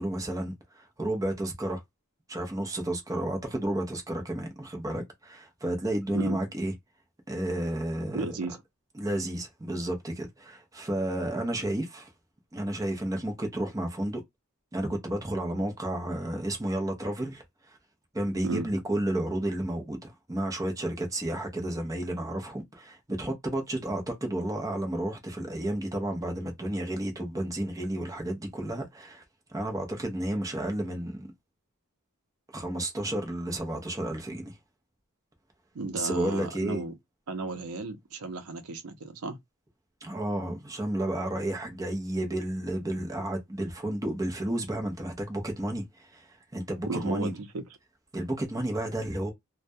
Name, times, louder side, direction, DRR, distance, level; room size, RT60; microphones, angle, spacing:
voice 1, 0.0-1.8 2.3-6.7 7.3-8.3 9.0-12.1 12.5-14.2 14.7-17.8 18.1-29.2 29.5-31.3 32.5-34.6 35.9-36.8 40.0-47.3 48.1-49.3, right 1 dB, 15° right, 0.6 m, -32 dB
voice 2, 8.1-8.6 18.4-18.7 35.7-36.9 37.3-39.4 46.9-47.6, right 3 dB, 85° right, 0.6 m, -34 dB
2.2 x 2.1 x 2.6 m
head